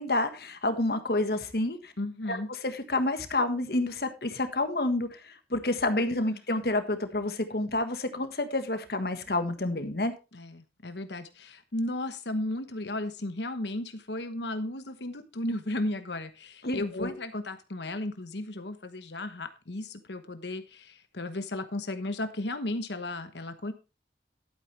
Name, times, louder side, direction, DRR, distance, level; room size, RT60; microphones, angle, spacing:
voice 1, 0.0-1.9 2.3-10.1 16.6-17.1, left 2 dB, 60° left, 9 dB, 1.5 m, -29 dB
voice 2, 2.0-2.5 6.3-6.4 10.3-23.7, left 1 dB, 75° left, 9 dB, 1.2 m, -35 dB
12.0 x 9.0 x 3.3 m, 0.29 s
head